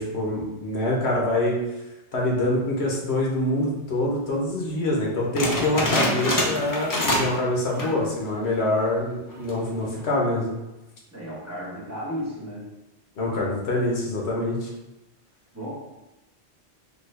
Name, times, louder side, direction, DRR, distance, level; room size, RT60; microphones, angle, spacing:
voice 1, 0.0-1.6 2.1-10.5 13.2-14.7, left 1 dB, 80° left, -2 dB, 1.1 m, -25 dB
sound 1, 5.4-7.4 7.7-8.1 8.5-8.6 9.3-9.7, left 1 dB, 30° left, 0.3 m, -25 dB
voice 2, 11.1-12.7 15.5-15.7, equal, 15° right, -9 dB, 1.0 m, -34 dB
3.7 x 2.1 x 3.2 m, 0.99 s
omnidirectional pair, 1.1 m